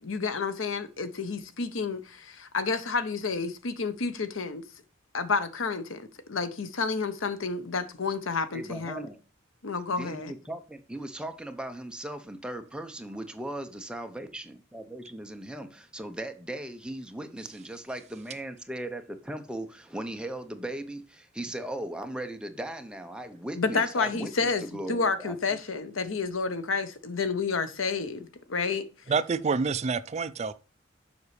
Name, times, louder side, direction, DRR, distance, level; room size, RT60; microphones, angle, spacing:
voice 1, 0.0-4.6 5.1-9.1 9.6-10.3 23.5-24.6 24.9-28.9, left 4 dB, 85° left, 0.9 m, -30 dB
voice 2, 8.5-9.2 9.9-25.4, right 1 dB, 5° right, 0.8 m, -38 dB
voice 3, 29.1-30.5, right 5 dB, 35° right, 0.4 m, -27 dB
7.2 x 5.4 x 3.2 m
head